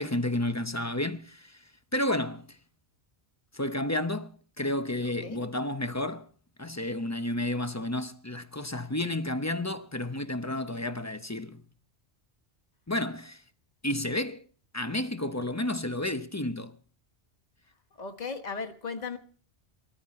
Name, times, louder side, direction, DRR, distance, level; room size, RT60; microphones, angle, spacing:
voice 1, 0.0-1.6 1.9-2.5 3.5-6.3 6.6-11.6 12.9-13.4 13.8-14.5 14.7-16.7, left 1 dB, 15° left, 0.8 m, -31 dB
voice 2, 5.0-5.4 17.9-19.2, left 4 dB, 40° left, 1.5 m, -37 dB
21.5 x 14.0 x 4.3 m
omnidirectional pair, 1.1 m